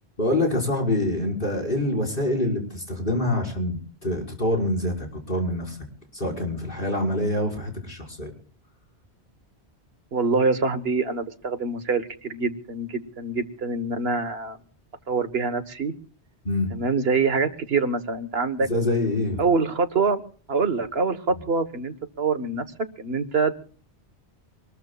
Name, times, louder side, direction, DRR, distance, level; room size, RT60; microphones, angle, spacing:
voice 1, 0.2-5.8 6.1-8.3 16.4-16.7 18.7-19.4, left 1 dB, 55° left, 2 dB, 5.6 m, -25 dB
voice 2, 10.1-14.6 15.1-15.9 16.7-18.7 19.4-20.2 20.5-22.6 23.0-23.5, right 4 dB, 65° right, 11 dB, 1.6 m, -25 dB
26.0 x 21.0 x 2.4 m, 0.43 s
omnidirectional pair, 1.1 m